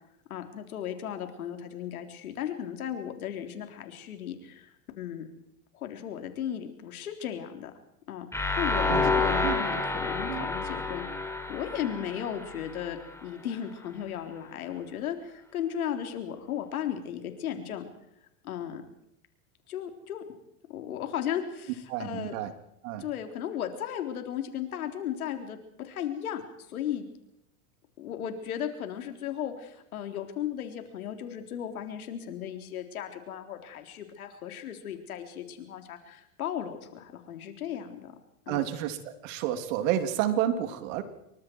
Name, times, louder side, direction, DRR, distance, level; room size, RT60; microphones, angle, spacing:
voice 1, 0.3-5.3 5.7-7.7 8.1-11.0 11.5-17.8 18.4-18.8 19.7-20.2 20.7-22.3 23.0-26.4 26.7-27.1 28.0-38.1 38.5-38.7, left 9 dB, 80° left, 5 dB, 3.8 m, -36 dB
sound 1, 8.3-13.2, left 3 dB, 5° left, 4.6 m, -29 dB
voice 2, 21.9-22.5 22.8-23.0 38.5-39.0 39.2-41.0, right 11 dB, 65° right, 8 dB, 3.2 m, -30 dB
27.0 x 24.0 x 4.7 m, 0.80 s
hypercardioid pair, 105°, 42 cm